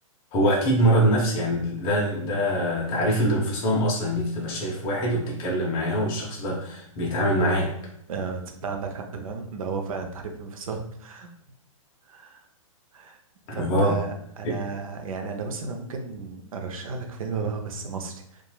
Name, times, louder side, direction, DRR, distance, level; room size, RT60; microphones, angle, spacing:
voice 1, 0.3-7.7 13.5-14.0 14.4-14.6, equal, 30° left, -3 dB, 0.6 m, -24 dB
voice 2, 8.1-11.3 12.1-12.4 12.9-13.2 13.5-18.5, right 4 dB, 80° right, 4 dB, 0.5 m, -34 dB
2.9 x 2.3 x 2.2 m, 0.69 s
hypercardioid pair, 135°, 18 cm